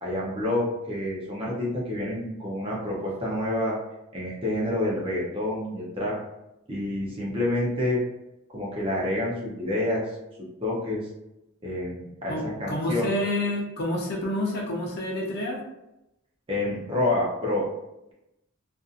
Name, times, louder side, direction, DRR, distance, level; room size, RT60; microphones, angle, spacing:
voice 1, 0.0-3.7 4.1-6.1 6.7-8.0 8.5-10.0 10.6-11.0 11.6-13.1 16.5-17.7, left 1 dB, 25° right, -4 dB, 0.6 m, -28 dB
voice 2, 12.3-15.6, left 1 dB, 45° left, -1 dB, 0.6 m, -28 dB
2.6 x 2.5 x 2.4 m, 0.91 s
head